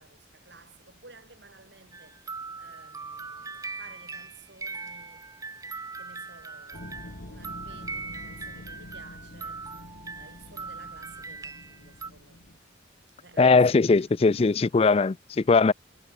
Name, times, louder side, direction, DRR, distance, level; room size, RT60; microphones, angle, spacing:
voice 1, 0.0-2.2 2.5-5.3 5.9-9.7 10.1-12.5 13.2-14.7, right 3 dB, 60° right, 6.6 m, -54 dB
sound 1, 1.9-12.1, right 4 dB, 15° right, 0.8 m, -40 dB
sound 2, 6.7-12.6, left 1 dB, 55° left, 1.7 m, -46 dB
voice 2, 13.4-15.7, left 4 dB, 30° left, 0.3 m, -20 dB
head